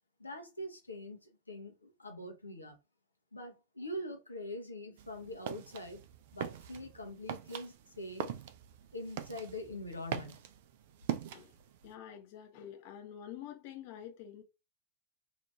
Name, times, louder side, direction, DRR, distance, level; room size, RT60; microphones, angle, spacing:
voice 1, 0.2-2.8 3.3-6.0 6.3-8.3 8.9-10.5, left 1 dB, 80° left, 0.9 m, -44 dB
sound 1, 5.0-11.9, right 9 dB, 50° right, 0.4 m, -42 dB
voice 2, 11.8-14.4, left 10 dB, 45° left, 0.7 m, -47 dB
2.8 x 2.5 x 3.3 m
figure-of-eight pair, 90°, 0 cm